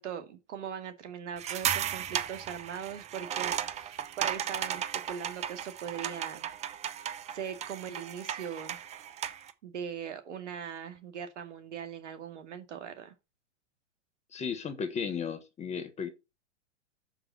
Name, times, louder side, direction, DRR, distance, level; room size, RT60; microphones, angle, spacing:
voice 1, 0.0-6.5 7.3-8.8 9.6-13.1, right 8 dB, 75° right, 2.2 m, -40 dB
sound 1, 1.4-9.5, right 10 dB, 20° right, 0.7 m, -35 dB
voice 2, 14.3-16.1, left 6 dB, 20° left, 1.4 m, -35 dB
6.7 x 5.8 x 5.7 m
hypercardioid pair, 125°, 36 cm